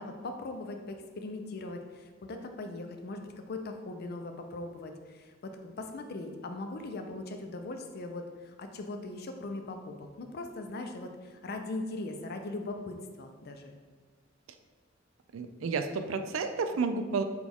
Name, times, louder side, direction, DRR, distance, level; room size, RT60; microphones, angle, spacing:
voice 1, 0.0-13.8, left 2 dB, 55° left, 5 dB, 0.5 m, -40 dB
voice 2, 15.3-17.2, right 4 dB, 85° right, 8 dB, 0.4 m, -31 dB
6.1 x 2.4 x 3.5 m, 1.5 s
head